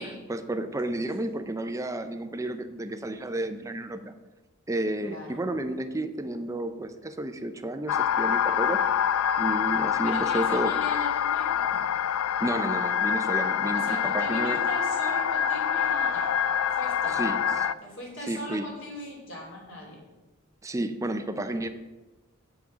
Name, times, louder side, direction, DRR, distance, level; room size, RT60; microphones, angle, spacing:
voice 1, 0.3-4.1 4.7-8.8 9.4-10.8 12.4-14.6 17.1-17.7 18.3-18.7 20.6-21.7, right 1 dB, 15° right, 9 dB, 0.5 m, -31 dB
voice 2, 5.0-5.4 10.0-11.9 13.7-16.4 16.7-17.5 17.8-20.0, equal, 60° left, -2 dB, 3.1 m, -39 dB
sound 1, 7.9-17.7, left 8 dB, 75° left, 0.3 m, -26 dB
8.4 x 5.9 x 6.1 m, 1.1 s
head